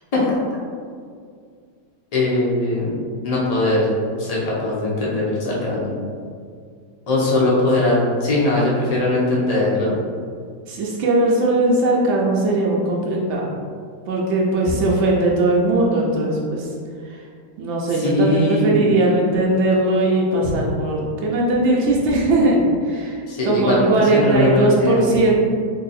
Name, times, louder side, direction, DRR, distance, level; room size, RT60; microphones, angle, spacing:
voice 1, 2.1-3.0 3.2-3.9 4.2-6.0 7.1-10.0 17.9-18.9 23.3-25.2, left 2 dB, 80° left, -6 dB, 0.3 m, -20 dB
voice 2, 10.7-13.5 14.1-16.7 17.0-17.2 17.6-25.4, right 2 dB, 75° right, -3 dB, 0.6 m, -19 dB
2.9 x 2.7 x 4.0 m, 2.1 s
omnidirectional pair, 1.8 m